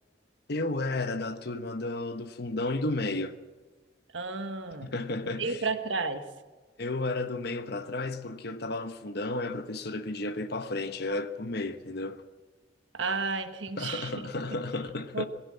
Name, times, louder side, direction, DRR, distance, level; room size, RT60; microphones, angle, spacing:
voice 1, 0.5-3.4 4.8-5.6 6.8-12.2 13.8-15.2, left 2 dB, 60° left, 1.2 m, -33 dB
voice 2, 4.1-4.9 5.2-6.3 12.9-14.3 15.1-15.2, right 4 dB, 80° right, 1.4 m, -32 dB
22.5 x 16.5 x 7.5 m
head